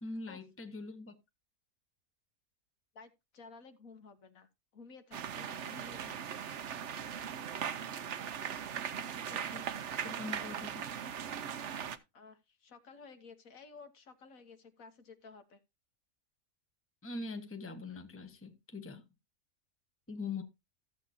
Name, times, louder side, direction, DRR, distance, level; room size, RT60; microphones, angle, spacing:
voice 1, 0.0-1.1 8.7-9.7 10.0-10.8 17.0-19.0 20.1-20.4, left 3 dB, 10° left, 1.0 m, -43 dB
voice 2, 2.9-6.2 12.1-15.6, left 4 dB, 65° left, 1.5 m, -54 dB
sound 1, 5.1-12.0, right 8 dB, 55° right, 1.0 m, -39 dB
14.5 x 7.5 x 2.7 m
omnidirectional pair, 1.6 m